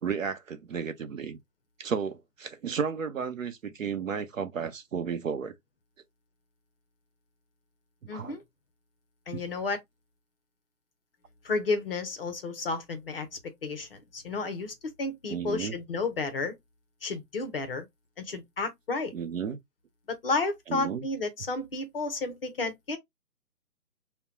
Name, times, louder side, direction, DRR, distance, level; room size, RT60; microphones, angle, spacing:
voice 1, 0.0-1.4 1.8-5.5 8.1-8.4 9.3-9.4 15.3-15.7 19.1-19.6 20.7-21.0, right 6 dB, 55° right, 0.7 m, -33 dB
voice 2, 8.1-8.4 9.3-9.8 11.4-16.5 17.0-17.9 18.2-19.1 20.1-23.0, left 3 dB, 35° left, 0.7 m, -32 dB
5.3 x 2.2 x 2.3 m
figure-of-eight pair, 150°, 48 cm